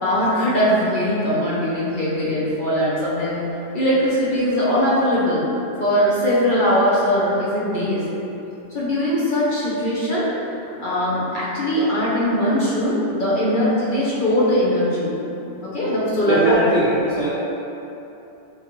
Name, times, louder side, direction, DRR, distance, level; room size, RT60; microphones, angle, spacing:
voice 1, 0.0-3.4 3.7-5.4 5.8-8.0 8.7-10.3 10.8-15.1 15.6-17.0, equal, 50° left, -7 dB, 0.9 m, -20 dB
voice 2, 16.3-17.3, right 1 dB, 40° right, -9 dB, 0.7 m, -20 dB
6.5 x 2.4 x 2.9 m, 3.0 s
omnidirectional pair, 1.2 m